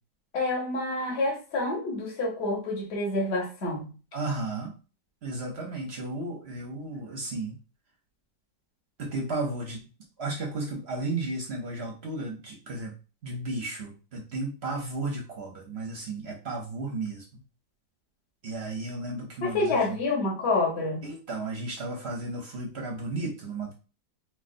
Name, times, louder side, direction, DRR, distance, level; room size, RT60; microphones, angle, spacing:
voice 1, 0.3-3.8 19.4-21.0, left 2 dB, 45° left, -1 dB, 1.1 m, -28 dB
voice 2, 4.1-4.7 5.2-7.5 9.0-9.8 10.2-12.9 13.2-17.2 18.4-20.0 21.0-23.7, right 2 dB, 55° right, 1 dB, 0.7 m, -34 dB
4.6 x 2.2 x 2.5 m, 0.33 s
omnidirectional pair, 1.9 m